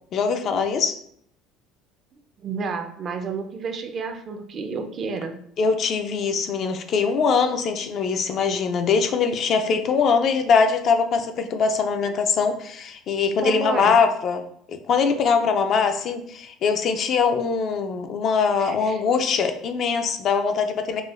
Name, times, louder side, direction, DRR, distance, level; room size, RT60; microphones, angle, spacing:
voice 1, 0.1-1.0 5.6-14.4 14.7-21.0, left 5 dB, 45° left, 7 dB, 0.3 m, -22 dB
voice 2, 2.4-5.4 13.4-13.9 18.6-19.0, right 5 dB, 35° right, 6 dB, 0.4 m, -31 dB
4.8 x 2.2 x 2.4 m, 0.67 s
cardioid pair, 140°, 0 cm